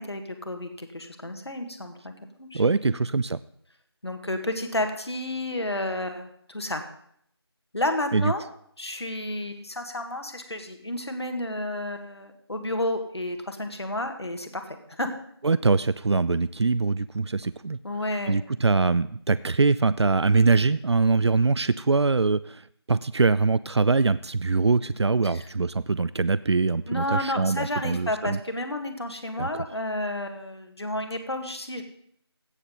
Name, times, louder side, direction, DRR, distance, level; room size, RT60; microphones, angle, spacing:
voice 1, 0.0-2.1 2.4-2.6 2.9-3.0 4.0-6.8 7.7-8.4 8.8-14.6 15.0-15.1 17.8-18.4 25.2-25.5 26.9-31.8, left 1 dB, 75° left, 6 dB, 1.8 m, -31 dB
voice 2, 2.5-3.4 8.1-8.3 15.4-17.8 18.3-28.4 29.4-29.5, right 4 dB, 80° right, 17 dB, 0.4 m, -23 dB
16.0 x 7.4 x 3.9 m, 0.67 s
figure-of-eight pair, 170°, 14 cm